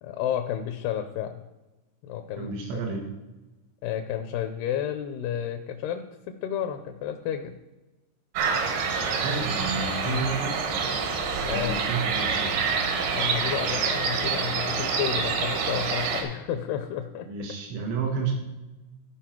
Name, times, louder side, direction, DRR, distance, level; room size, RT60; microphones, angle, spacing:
voice 1, 0.0-1.4 2.0-2.8 3.8-7.5 10.0-10.2 11.4-11.8 13.2-17.3, left 10 dB, 80° left, 6 dB, 2.5 m, -31 dB
voice 2, 2.4-3.0 9.2-10.8 11.5-12.5 17.3-18.3, right 4 dB, 90° right, 1 dB, 3.7 m, -31 dB
sound 1, 8.4-16.2, right 5 dB, 70° right, 3.1 m, -27 dB
15.0 x 5.2 x 4.4 m, 1.1 s
omnidirectional pair, 4.9 m